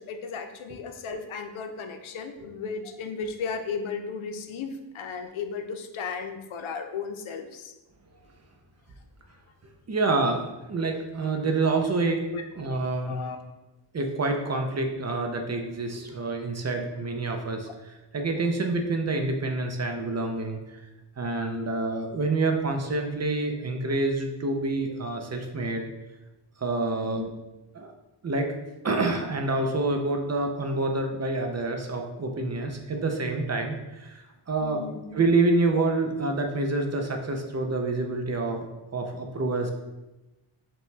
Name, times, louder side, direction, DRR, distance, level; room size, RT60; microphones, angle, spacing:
voice 1, 0.0-7.7 12.3-12.5 13.0-13.4 26.9-27.3 34.6-35.1, left 5 dB, 85° left, 7 dB, 0.6 m, -35 dB
voice 2, 9.9-12.2 12.6-13.2 13.9-20.8 21.2-25.9 26.6-27.3 27.7-27.9 28.2-28.5 28.8-34.8 35.1-38.7 38.9-39.7, right 3 dB, 35° right, 3 dB, 0.4 m, -27 dB
5.5 x 2.2 x 3.2 m, 1.0 s
wide cardioid pair, 135°, 47 cm